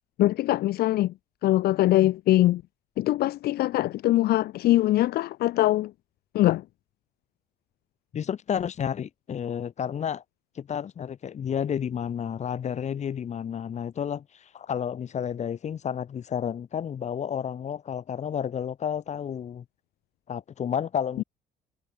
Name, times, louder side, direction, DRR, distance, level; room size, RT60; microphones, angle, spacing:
voice 1, 0.2-1.1 1.4-2.6 3.0-5.9 6.3-6.6 21.2-21.3, left 15 dB, 70° left, 0.8 m, -22 dB
voice 2, 8.1-10.2 10.6-19.7 20.3-21.2, left 8 dB, 45° left, 1.7 m, -31 dB
cardioid pair, 110°, 17 cm